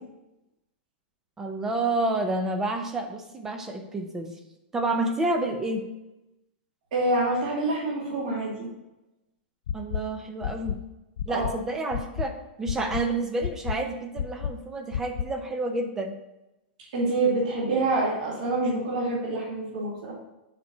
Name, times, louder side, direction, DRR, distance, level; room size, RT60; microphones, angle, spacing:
voice 1, 1.4-4.4 4.7-5.8 9.7-10.8 11.2-16.2, right 2 dB, 10° right, 5 dB, 0.5 m, -29 dB
voice 2, 6.9-8.7 11.3-11.5 16.9-20.2, right 2 dB, 45° right, -5 dB, 2.5 m, -26 dB
sound 1, 9.7-10.0 10.4-10.8 11.2-11.5 11.9-12.3 12.7-13.0 13.4-13.8 14.2-14.5 14.9-15.2, left 9 dB, 65° left, 0.4 m, -29 dB
6.6 x 4.7 x 5.4 m, 0.95 s
supercardioid pair, 180°, 6 cm